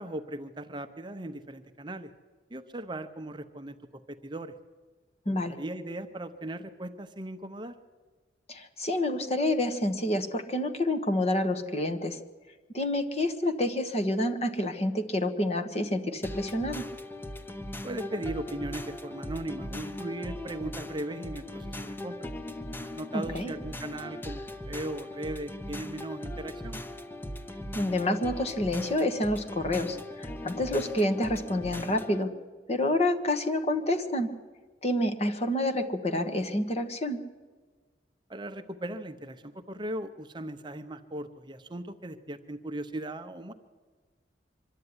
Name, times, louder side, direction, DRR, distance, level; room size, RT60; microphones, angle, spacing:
voice 1, 0.0-2.1 2.5-4.5 5.3-7.7 17.8-22.3 22.9-26.8 38.3-43.5, right 1 dB, 25° right, 8 dB, 0.8 m, -38 dB
voice 2, 5.2-5.6 8.5-12.2 12.7-16.8 23.1-23.5 27.7-32.3 32.7-34.3 34.8-37.2, left 1 dB, 35° left, 6 dB, 1.4 m, -28 dB
sound 1, 16.2-32.2, left 1 dB, 10° left, 0.8 m, -39 dB
24.0 x 12.5 x 9.7 m, 1.4 s
head